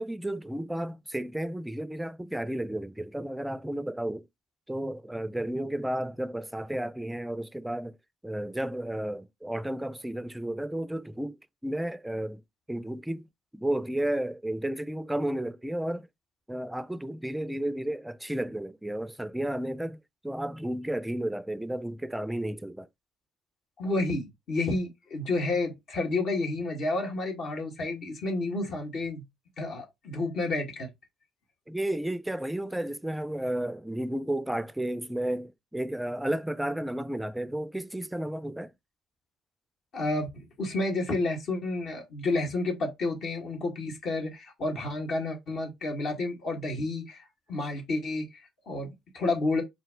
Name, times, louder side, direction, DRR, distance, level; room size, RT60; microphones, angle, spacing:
voice 1, 0.0-4.2 4.7-8.0 8.2-12.4 12.7-13.3 13.5-16.1 16.5-20.0 20.2-22.9 31.7-38.7, right 1 dB, 5° right, 0.4 m, -32 dB
voice 2, 23.8-29.2 29.6-30.9 39.9-48.4 48.7-49.6, left 2 dB, 60° left, 1.7 m, -30 dB
4.4 x 2.7 x 3.7 m
supercardioid pair, 70°, 0 cm